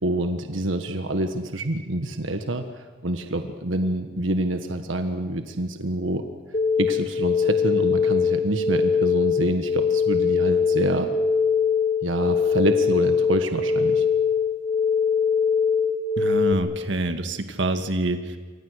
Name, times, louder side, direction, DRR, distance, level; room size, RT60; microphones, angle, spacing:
voice 1, 0.0-6.2 6.8-11.1 12.0-14.0, right 1 dB, 90° right, 7 dB, 1.4 m, -27 dB
sound 1, 6.5-16.5, left 6 dB, 35° left, 2.5 m, -22 dB
voice 2, 16.2-18.4, right 2 dB, 65° right, 7 dB, 1.8 m, -26 dB
27.5 x 25.0 x 6.6 m, 1.5 s
head